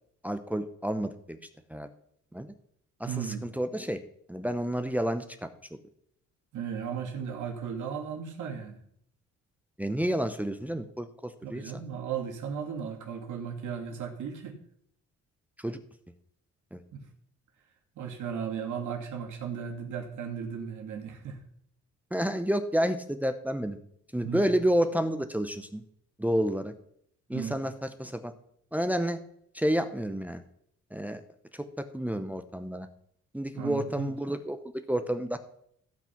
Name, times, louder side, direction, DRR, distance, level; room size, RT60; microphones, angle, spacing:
voice 1, 0.2-1.4 1.7-1.9 2.3-2.5 3.0-4.0 4.3-5.5 9.8-11.6 15.6-15.8 16.7-16.8 22.1-23.8 24.1-25.8 26.2-26.7 27.3-28.3 28.7-29.2 29.5-30.4 30.9-31.2 31.5-31.6 31.9-32.9 33.3-34.6 34.9-35.4, equal, 5° right, 8 dB, 0.9 m, -30 dB
voice 2, 3.0-3.5 6.5-8.8 11.4-14.6 16.9-17.0 18.0-21.4 24.2-24.4 27.3-27.6 33.5-34.1, right 7 dB, 80° right, 2 dB, 2.7 m, -36 dB
16.0 x 5.8 x 6.0 m, 0.68 s
cardioid pair, 90°, 30 cm